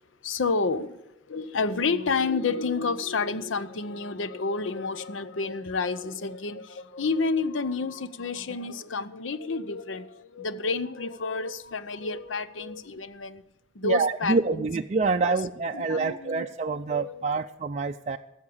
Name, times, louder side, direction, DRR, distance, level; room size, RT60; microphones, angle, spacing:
voice 1, 0.2-1.0 1.3-13.4 13.7-14.7 15.2-15.4 15.7-17.4, left 4 dB, 85° left, 14 dB, 0.7 m, -30 dB
voice 2, 13.8-18.2, right 4 dB, 35° right, 5 dB, 0.4 m, -26 dB
14.5 x 7.3 x 8.6 m, 1.0 s
head